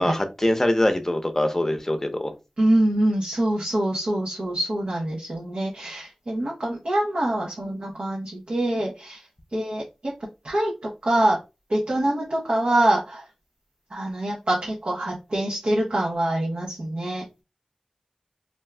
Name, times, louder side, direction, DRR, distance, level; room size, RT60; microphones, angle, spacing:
voice 1, 0.0-2.3, left 1 dB, 20° left, 0.7 m, -23 dB
voice 2, 2.6-9.2 9.5-9.8 10.4-11.4 11.7-13.2 13.9-17.4, right 1 dB, 70° right, 0.8 m, -25 dB
2.6 x 2.3 x 3.3 m
wide cardioid pair, 50°, 2 cm